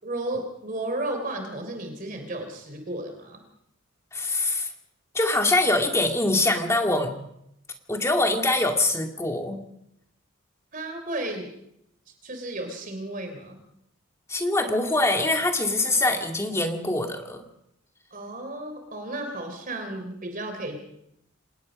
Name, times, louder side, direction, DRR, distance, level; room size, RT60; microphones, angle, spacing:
voice 1, 0.0-3.4 10.7-11.5 12.2-13.6 18.1-20.8, right 1 dB, 40° right, 5 dB, 3.5 m, -33 dB
voice 2, 4.1-4.7 5.1-7.1 7.9-9.6 14.3-17.4, left 2 dB, 15° left, 3 dB, 2.2 m, -24 dB
26.0 x 19.5 x 5.3 m, 0.78 s
head